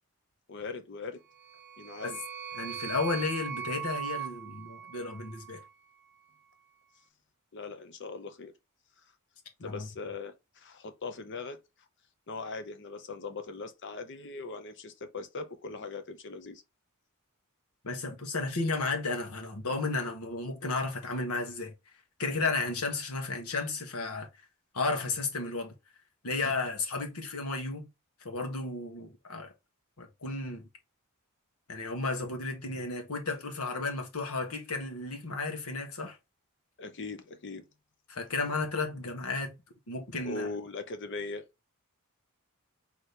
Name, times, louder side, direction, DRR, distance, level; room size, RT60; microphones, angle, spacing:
voice 1, 0.5-1.2 1.8-2.2 7.5-8.5 9.6-11.6 12.3-16.6 36.8-37.6 40.2-41.5, left 3 dB, 55° left, 0.7 m, -40 dB
sound 1, 1.3-5.7, right 9 dB, 55° right, 0.6 m, -40 dB
voice 2, 2.6-5.6 9.6-9.9 17.8-21.7 22.2-24.3 24.7-25.7 26.2-27.9 28.2-29.5 30.0-30.6 31.7-36.2 38.1-39.5 39.9-40.5, left 3 dB, 85° left, 1.3 m, -33 dB
4.2 x 3.0 x 3.2 m
head